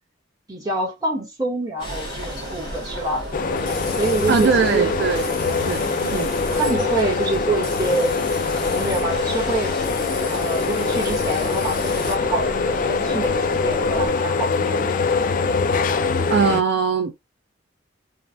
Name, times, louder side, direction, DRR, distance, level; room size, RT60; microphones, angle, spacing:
voice 1, 0.5-3.3 4.0-4.9 6.0-6.3 6.6-9.7 10.2-15.1, right 2 dB, 20° right, 1.0 m, -26 dB
sound 1, 1.8-12.2, left 2 dB, 25° left, 0.8 m, -37 dB
sound 2, 1.8-14.1, right 1 dB, 80° right, 1.0 m, -34 dB
sound 3, 3.3-16.6, left 4 dB, 45° left, 0.3 m, -23 dB
voice 2, 4.3-5.3 5.6-6.3 16.3-17.2, right 5 dB, 60° right, 0.3 m, -21 dB
3.1 x 2.1 x 2.5 m
head